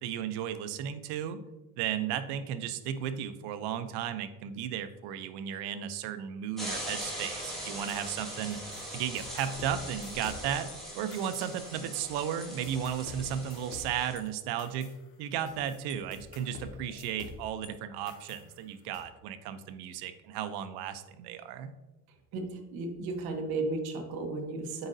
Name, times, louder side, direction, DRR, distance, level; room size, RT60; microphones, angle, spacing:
voice 1, 0.0-1.4 1.8-8.6 8.9-10.7 10.9-14.9 15.2-21.7, right 9 dB, 90° right, 11 dB, 0.6 m, -34 dB
sound 1, 6.6-14.1, equal, ahead, 1.9 m, -41 dB
sound 2, 7.9-10.8 11.1-12.1 12.4-17.7 18.1-19.0, left 5 dB, 80° left, 1.1 m, -49 dB
voice 2, 22.3-24.9, right 3 dB, 65° right, 3 dB, 1.1 m, -34 dB
7.9 x 4.9 x 2.6 m, 1.1 s
cardioid pair, 155°, 38 cm